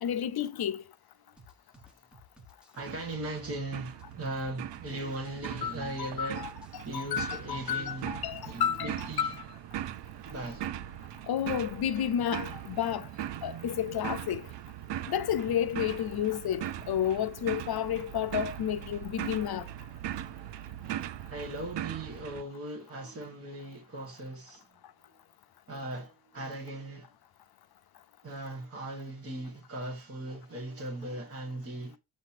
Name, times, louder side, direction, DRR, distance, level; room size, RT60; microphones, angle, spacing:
voice 1, 0.0-0.8 5.6-6.5 6.9-9.3 11.3-13.1 13.4-14.5 15.1-19.7, left 10 dB, 60° left, 0.6 m, -31 dB
sound 1, 1.4-9.4, equal, ahead, 1.0 m, -56 dB
voice 2, 2.7-6.5 6.8-8.2 8.4-9.4 10.2-10.8 21.3-24.7 25.7-27.2 28.2-32.0, right 2 dB, 35° right, 1.4 m, -39 dB
sound 2, 2.8-22.4, right 12 dB, 80° right, 0.6 m, -40 dB
7.3 x 2.9 x 5.8 m
wide cardioid pair, 150°, 42 cm